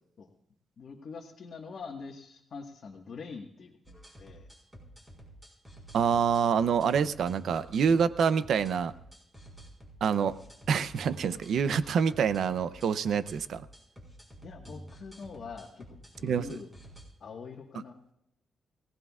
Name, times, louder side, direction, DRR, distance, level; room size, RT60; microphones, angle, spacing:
voice 1, 0.8-4.5 6.0-6.2 14.4-16.7 17.2-18.0, left 5 dB, 50° left, 0 dB, 1.5 m, -44 dB
sound 1, 3.8-17.0, right 1 dB, 10° right, 4.8 m, -50 dB
voice 2, 5.9-8.9 10.0-10.3 10.7-13.7 16.2-16.5, right 7 dB, 70° right, 13 dB, 0.6 m, -26 dB
23.0 x 17.5 x 2.4 m, 0.78 s
wide cardioid pair, 145°, 0 cm